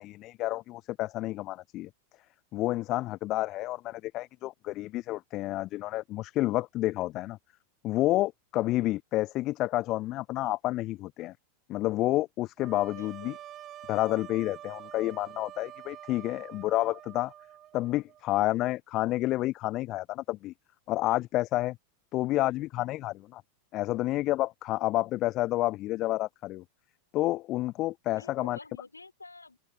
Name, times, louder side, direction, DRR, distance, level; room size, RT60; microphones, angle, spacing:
voice 1, 0.0-1.9 2.5-7.4 7.8-11.3 11.7-13.3 13.9-17.3 17.7-20.5 20.9-21.8 22.1-23.4 23.7-26.6 27.1-28.6, left 17 dB, 35° left, 0.7 m, -29 dB
sound 1, 12.6-18.4, right 12 dB, 30° right, 4.9 m, -47 dB
voice 2, 13.0-13.5 28.1-29.6, left 3 dB, 80° left, 5.4 m, -49 dB
figure-of-eight pair, 90°, 0 cm